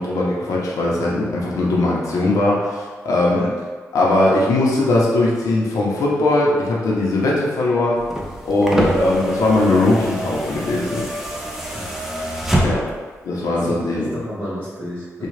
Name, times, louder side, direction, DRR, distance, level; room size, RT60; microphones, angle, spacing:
voice 1, 0.0-3.5 3.9-8.0 8.4-11.0 12.6-12.8 13.2-14.1 15.2-15.3, left 2 dB, 85° left, -4 dB, 0.8 m, -19 dB
sound 1, 8.0-13.1 14.3-14.4, equal, 5° right, 0.6 m, -25 dB
voice 2, 11.7-12.8 13.6-15.3, equal, 40° right, -13 dB, 1.5 m, -32 dB
3.7 x 2.4 x 3.3 m, 1.4 s
cardioid pair, 85°, 6 cm